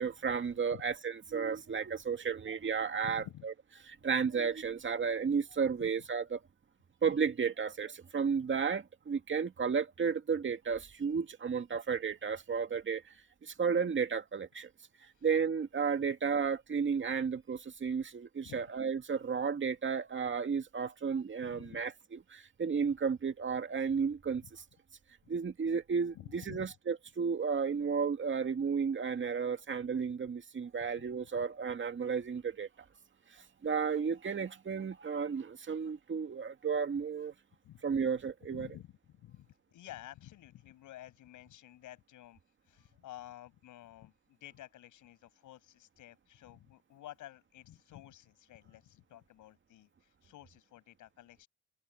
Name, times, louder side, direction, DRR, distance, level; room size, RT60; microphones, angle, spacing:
voice 1, 0.0-3.5 3.8-6.4 7.0-13.0 13.4-14.7 15.2-24.6 25.3-32.7 33.3-37.3 37.8-38.7, right 6 dB, 40° right, 2.2 m, -33 dB
voice 2, 3.0-3.5 5.8-5.9 15.2-15.3 18.4-18.6 21.4-21.8 26.2-26.6 37.6-37.8 38.5-38.9 39.2-42.4 42.7-44.1 44.4-51.5, left 13 dB, 85° left, 7.2 m, -51 dB
cardioid pair, 90°, 30 cm